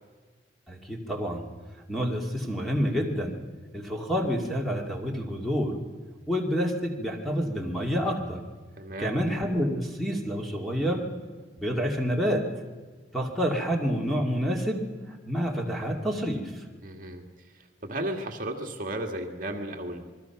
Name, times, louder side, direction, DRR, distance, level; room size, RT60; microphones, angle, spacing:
voice 1, 0.7-1.5 1.9-3.4 3.7-5.8 6.3-8.5 9.0-11.1 11.6-12.5 13.1-14.9 15.2-16.6, equal, ahead, 0 dB, 2.3 m, -28 dB
voice 2, 8.8-9.2 16.8-17.2 17.5-20.1, right 1 dB, 45° right, 3 dB, 1.9 m, -34 dB
27.5 x 21.5 x 5.9 m, 1.4 s
head